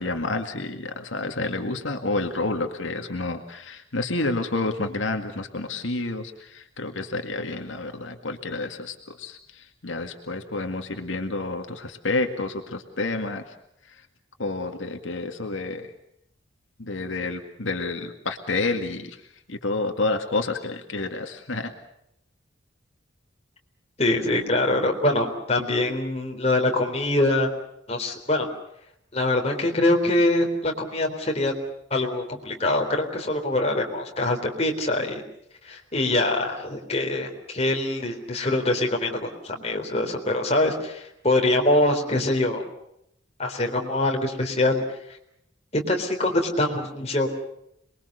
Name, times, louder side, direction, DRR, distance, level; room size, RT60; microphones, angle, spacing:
voice 1, 0.0-13.5 14.4-15.9 16.8-19.2 19.5-21.7, left 2 dB, 85° left, 5 dB, 2.0 m, -29 dB
voice 2, 24.0-27.5 27.9-28.5 29.1-31.5 31.9-35.2 35.6-42.6 43.4-44.8 45.7-47.3, left 2 dB, 35° left, 2 dB, 3.9 m, -24 dB
27.5 x 22.0 x 6.7 m, 0.76 s
head